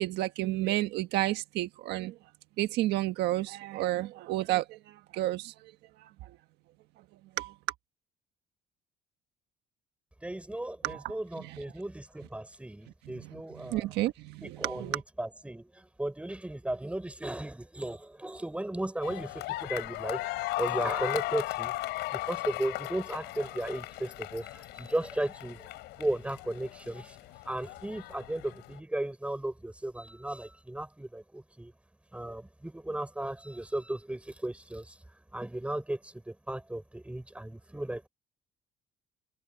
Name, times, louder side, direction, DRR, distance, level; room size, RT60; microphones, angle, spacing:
voice 1, 0.0-2.1 2.6-4.8 5.1-5.5 7.4-7.5 10.8-11.6 13.1-15.0, right 16 dB, 85° right, 1.4 m, -31 dB
voice 2, 10.2-13.9 14.4-20.3 20.6-21.7 22.1-25.6 26.0-27.2 27.5-31.7 32.1-34.9 35.3-38.1, right 1 dB, 5° right, 5.8 m, -35 dB
sound 1, 19.0-28.8, left 19 dB, 90° left, 5.9 m, -37 dB
cardioid pair, 110°, 17 cm